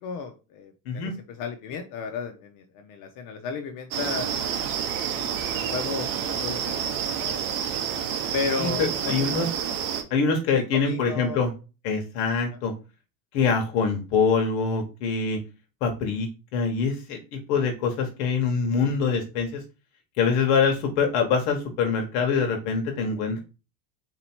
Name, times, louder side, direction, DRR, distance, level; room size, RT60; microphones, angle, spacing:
voice 1, 0.0-4.6 4.9-7.5 8.3-9.3 10.5-11.5, left 5 dB, 45° left, 6 dB, 0.7 m, -34 dB
sound 1, 3.9-10.0, right 8 dB, 45° right, 0.8 m, -29 dB
voice 2, 8.6-9.5 10.1-11.5 11.8-12.7 13.3-15.4 15.8-19.6 20.2-23.4, left 5 dB, 65° left, 3 dB, 1.2 m, -24 dB
3.9 x 2.9 x 4.4 m, 0.32 s
supercardioid pair, 135°, 44 cm